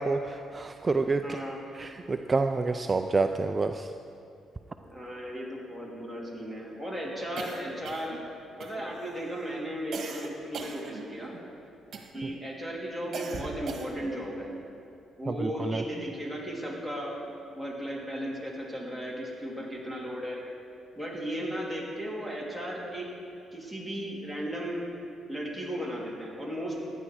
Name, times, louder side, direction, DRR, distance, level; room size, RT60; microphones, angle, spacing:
voice 1, 0.0-1.4 1.7-3.9 12.2-12.3 15.3-15.8, right 3 dB, 30° right, 7 dB, 0.5 m, -28 dB
voice 2, 1.2-1.6 4.8-8.2 8.6-11.3 12.1-14.5 15.2-20.4 21.0-23.1 23.5-24.8 25.3-26.8, equal, 5° left, -4 dB, 3.4 m, -35 dB
sound 1, 7.4-8.3 8.6-9.1 9.9-11.4 11.9-12.3 13.1-14.1, right 4 dB, 60° right, 1.5 m, -40 dB
16.0 x 10.0 x 4.8 m, 2.6 s
cardioid pair, 90°, 0 cm